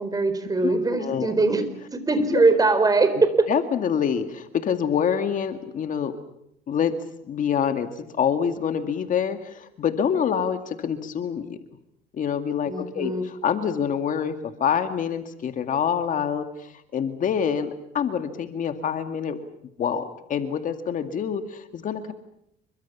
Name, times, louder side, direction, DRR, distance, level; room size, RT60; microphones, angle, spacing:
voice 1, 0.0-1.6 1.9-3.5 12.7-13.2, right 3 dB, 20° right, 11 dB, 4.4 m, -21 dB
voice 2, 0.6-1.3 2.3-2.4 3.5-6.2 6.7-7.0 7.3-11.6 12.1-19.4 19.8-22.1, left 7 dB, 50° left, 8 dB, 2.1 m, -26 dB
28.0 x 24.0 x 7.2 m, 0.78 s
cardioid pair, 110°, 17 cm